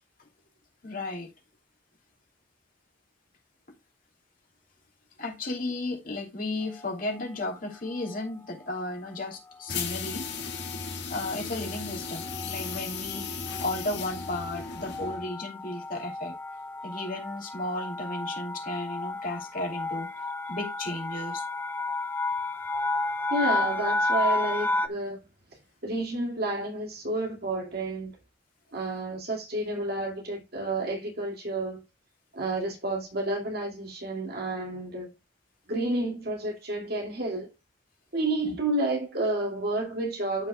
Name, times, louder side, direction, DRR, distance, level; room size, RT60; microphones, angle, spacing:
voice 1, 0.8-1.3 5.2-10.2 11.1-13.3 13.6-16.4 16.8-20.1 20.5-21.4 38.4-38.5, left 2 dB, 50° left, 2.9 m, -34 dB
sound 1, 6.7-7.2 8.0-8.3 8.6-8.9 9.1-24.9, left 2 dB, 10° left, 0.5 m, -33 dB
sound 2, 9.7-15.3, left 5 dB, 65° left, 1.9 m, -36 dB
voice 2, 23.3-25.2 25.8-28.1 28.7-31.8 32.3-35.1 35.7-37.5 38.1-40.5, right 2 dB, 55° right, 2.4 m, -30 dB
13.5 x 5.6 x 2.3 m
head